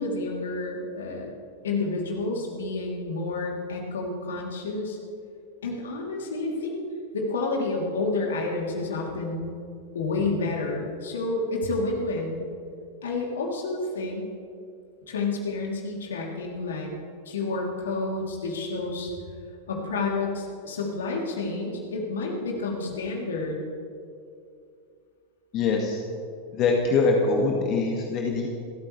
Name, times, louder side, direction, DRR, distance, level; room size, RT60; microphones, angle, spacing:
voice 1, 0.0-1.4 1.6-5.0 5.6-6.8 7.1-9.5 9.9-12.4 13.0-14.3 15.1-16.9 17.2-19.1 19.7-23.6, left 3 dB, 65° left, -1 dB, 3.3 m, -29 dB
voice 2, 25.5-26.0 26.5-28.5, left 4 dB, 35° left, 0 dB, 2.0 m, -23 dB
29.0 x 14.0 x 3.4 m, 2.4 s
figure-of-eight pair, 90°, 0 cm